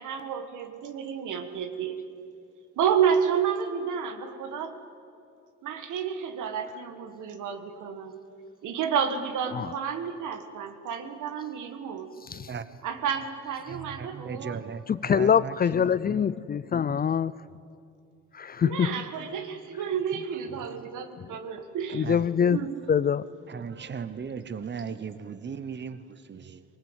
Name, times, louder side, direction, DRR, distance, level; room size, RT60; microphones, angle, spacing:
voice 1, 0.0-2.1 2.8-4.8 5.6-8.2 8.6-12.1 12.8-14.6 18.6-22.0 22.5-22.8, right 7 dB, 80° right, 1.7 m, -30 dB
voice 2, 9.4-9.7 12.2-12.5 14.9-17.3 18.3-19.1 21.2-21.3 21.9-23.3, left 7 dB, 30° left, 0.4 m, -25 dB
voice 3, 13.7-15.6 15.8-16.3 16.9-17.1 18.8-19.3 20.1-20.9 21.9-22.3 23.5-26.6, right 6 dB, 35° right, 1.1 m, -38 dB
20.5 x 18.5 x 8.2 m
cardioid pair, 90°, 30 cm